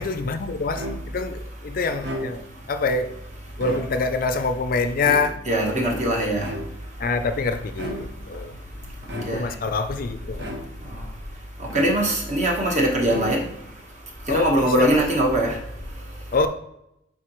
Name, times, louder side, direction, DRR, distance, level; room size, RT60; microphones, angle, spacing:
voice 1, 0.0-2.4 2.7-3.2 3.6-5.4 7.0-10.5 14.3-15.0 16.3-16.5, left 4 dB, 45° left, 0.4 m, -26 dB
sound 1, 0.8-1.3 1.9-2.7 3.5-4.3 5.0-5.7 6.4-7.0 7.7-8.3 9.1-9.7 10.4-11.0 11.7-12.4 13.0-13.7, equal, 60° right, 1.1 m, -35 dB
voice 2, 5.5-6.6 8.3-8.4 9.0-9.5 10.8-11.1 11.6-16.3, right 1 dB, 35° right, 1.3 m, -23 dB
9.4 x 3.9 x 3.1 m
head